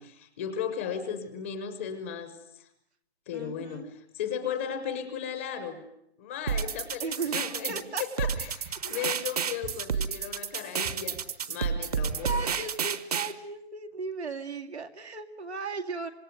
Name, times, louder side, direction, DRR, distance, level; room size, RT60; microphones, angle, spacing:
voice 1, 0.0-2.7 3.3-5.8 6.2-8.6 8.8-11.2 11.5-12.4, left 8 dB, 10° left, 9 dB, 0.9 m, -36 dB
voice 2, 3.3-3.9 7.0-7.4 7.7-8.0 12.2-16.1, right 4 dB, 90° right, 4 dB, 2.4 m, -36 dB
sound 1, 6.5-13.3, right 7 dB, 35° right, 1.1 m, -31 dB
sound 2, 8.3-9.0 9.6-10.3 10.8-11.5 12.1-12.7, right 4 dB, 10° right, 0.9 m, -45 dB
25.5 x 21.0 x 9.4 m, 0.76 s
hypercardioid pair, 170°, 32 cm